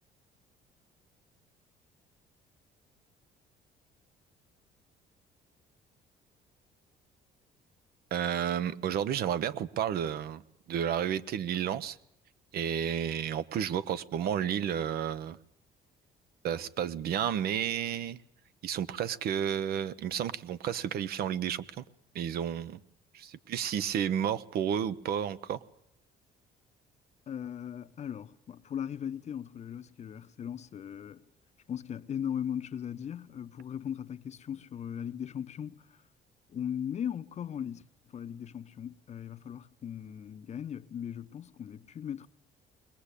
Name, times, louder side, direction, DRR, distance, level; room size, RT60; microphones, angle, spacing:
voice 1, 8.1-10.4 10.7-12.0 12.5-15.4 16.4-18.2 18.6-21.8 22.1-22.8 23.1-25.6, right 9 dB, 65° right, 1.0 m, -31 dB
voice 2, 27.3-31.2 31.7-36.0 36.5-37.8 38.1-42.3, left 9 dB, 40° left, 0.9 m, -38 dB
21.5 x 20.0 x 8.4 m
cardioid pair, 110°, 17 cm